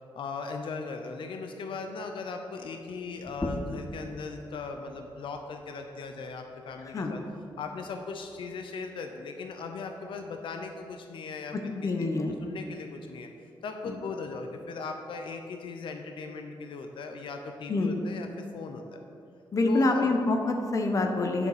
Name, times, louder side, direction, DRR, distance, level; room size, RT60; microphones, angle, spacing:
voice 1, 0.1-7.2 7.6-11.5 11.8-13.3 13.6-19.0 19.6-20.1, left 4 dB, 75° left, 5 dB, 0.6 m, -38 dB
sound 1, 3.2-8.4, left 1 dB, 15° left, 0.7 m, -42 dB
voice 2, 11.5-12.4 13.8-14.0 17.7-17.9 19.5-21.5, left 2 dB, 40° left, 4 dB, 0.9 m, -26 dB
9.8 x 6.7 x 4.9 m, 2.6 s
wide cardioid pair, 160°, 9 cm